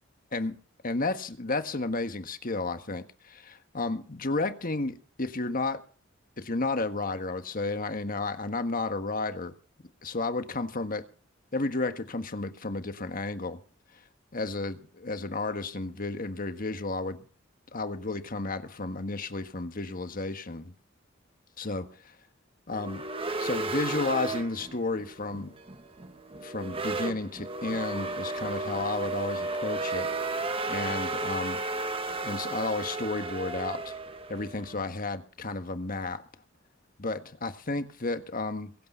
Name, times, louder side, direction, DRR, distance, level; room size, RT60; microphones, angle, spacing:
voice 1, 0.8-5.8 6.4-9.5 10.0-11.0 11.5-13.6 14.3-17.3 17.7-20.7 21.6-21.9 22.7-23.0 23.4-25.5 26.4-30.1 30.6-31.6 32.2-33.9 34.3-36.2 37.0-38.7, left 3 dB, 45° left, 1.6 m, -32 dB
sound 1, 22.7-34.8, right 2 dB, 30° right, 1.4 m, -34 dB
22.5 x 8.6 x 5.7 m
head